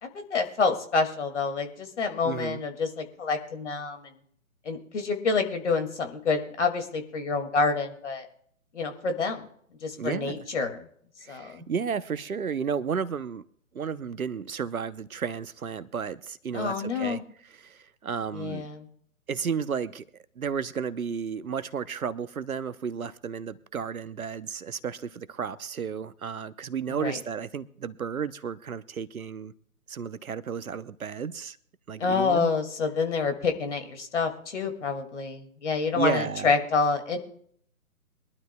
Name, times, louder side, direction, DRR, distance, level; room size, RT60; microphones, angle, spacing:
voice 1, 0.0-4.1 4.7-8.3 8.7-9.4 9.8-10.9 11.3-11.7 16.5-17.2 18.3-18.9 26.9-27.2 32.0-37.2, left 4 dB, 50° left, 2.3 m, -28 dB
voice 2, 2.2-2.6 10.0-10.4 11.2-13.4 13.7-18.6 19.3-20.1 20.4-29.5 29.9-31.6 31.9-32.5 35.9-36.5, right 6 dB, 75° right, 0.9 m, -33 dB
23.0 x 12.0 x 2.2 m
figure-of-eight pair, 140°, 44 cm